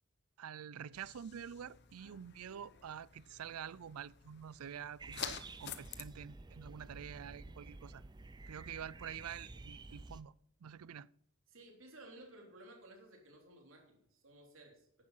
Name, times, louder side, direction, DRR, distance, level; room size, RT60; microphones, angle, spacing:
voice 1, 0.4-8.0 8.5-10.3 10.6-11.1, right 8 dB, 90° right, 0.4 m, -47 dB
sound 1, 0.9-6.0, left 9 dB, 50° left, 0.9 m, -49 dB
sound 2, 5.0-10.2, right 3 dB, 20° right, 0.4 m, -51 dB
voice 2, 11.5-15.0, right 1 dB, 65° right, 3.5 m, -56 dB
11.0 x 9.9 x 5.6 m
head